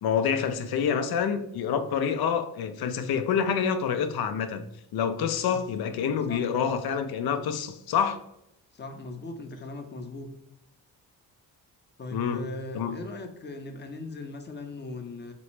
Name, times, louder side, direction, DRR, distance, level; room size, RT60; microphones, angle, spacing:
voice 1, 0.0-4.6 4.9-8.2 12.1-12.5 12.7-13.0, left 7 dB, 75° left, 9 dB, 0.5 m, -27 dB
voice 2, 8.7-10.3 12.0-15.3, left 2 dB, 30° left, 5 dB, 0.6 m, -39 dB
3.2 x 3.0 x 3.0 m, 0.80 s
cardioid pair, 70°, 38 cm